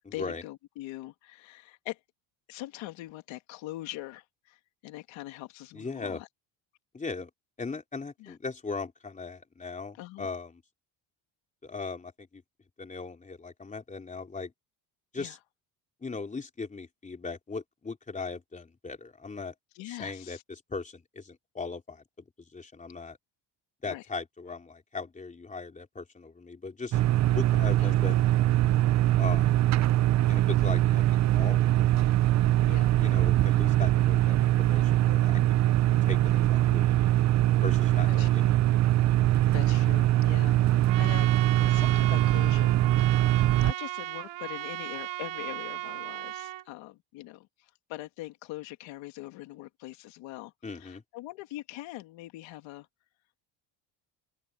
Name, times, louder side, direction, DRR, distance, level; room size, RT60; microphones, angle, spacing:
voice 1, 0.1-2.0 2.5-6.3 8.2-8.4 10.0-10.3 15.2-15.4 19.8-20.4 23.9-24.0 27.8-27.9 32.7-33.0 38.1-38.3 39.3-42.8 43.6-52.9, left 17 dB, 90° left, 2.1 m, -42 dB
voice 2, 5.7-6.2 6.9-7.3 7.6-10.6 11.6-12.4 12.8-14.5 15.1-15.4 16.0-19.5 19.9-22.0 22.4-23.2 23.8-27.0 27.3-28.2 29.2-29.6 30.3-32.2 33.0-35.4 36.1-37.0 37.6-38.5 50.6-51.0, left 4 dB, 15° left, 3.6 m, -38 dB
sound 1, 26.9-43.7, right 14 dB, 40° right, 0.5 m, -23 dB
Trumpet, 40.8-46.6, right 16 dB, 75° right, 3.5 m, -36 dB
open air
cardioid pair, 145°, 44 cm